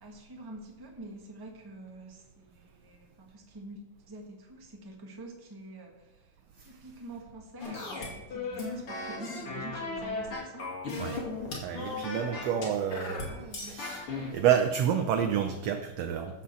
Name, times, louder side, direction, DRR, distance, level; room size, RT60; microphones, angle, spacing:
voice 1, 0.0-3.8 4.1-11.1 11.8-13.7, right 2 dB, 10° right, 1 dB, 1.0 m, -47 dB
sound 1, 7.6-14.3, left 3 dB, 50° left, 3.4 m, -36 dB
voice 2, 11.6-13.3 13.6-14.1 14.3-16.4, right 9 dB, 70° right, 6 dB, 1.7 m, -29 dB
12.5 x 5.7 x 7.5 m, 1.1 s
omnidirectional pair, 3.3 m